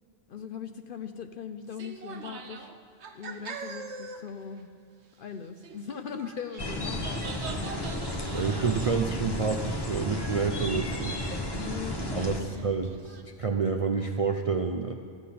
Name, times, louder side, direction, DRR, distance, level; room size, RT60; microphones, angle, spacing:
voice 1, 0.3-2.7 3.1-4.7 5.2-7.9 11.5-12.7, left 7 dB, 60° left, 8 dB, 0.6 m, -40 dB
sound 1, 1.7-4.3 4.6-4.7 5.6-9.8 10.1-10.6 10.9-11.5 11.8-13.2, right 4 dB, 65° right, 1.1 m, -43 dB
sound 2, 6.6-12.4, left 1 dB, 25° left, 0.8 m, -33 dB
voice 2, 8.3-11.2 12.1-12.9 13.2-14.9, right 5 dB, 50° right, 4 dB, 0.4 m, -28 dB
13.5 x 5.7 x 8.5 m, 2.6 s
omnidirectional pair, 1.3 m